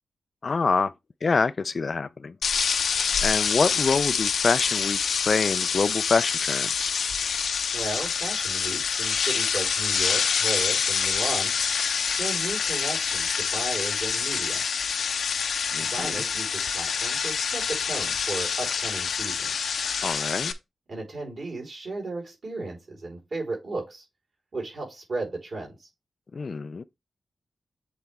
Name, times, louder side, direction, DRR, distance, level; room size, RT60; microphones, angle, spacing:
voice 1, 0.4-0.9 1.2-2.3 3.2-5.0 5.3-6.9 15.7-16.2 20.0-20.5 26.3-26.8, left 4 dB, 40° left, 0.3 m, -26 dB
sound 1, 2.4-20.5, left 6 dB, 75° left, 0.7 m, -26 dB
voice 2, 7.7-11.5 12.0-14.6 15.8-19.5 20.9-24.0 24.5-25.9, right 2 dB, 50° right, 4.0 m, -35 dB
7.9 x 4.1 x 3.5 m
wide cardioid pair, 170°, 0 cm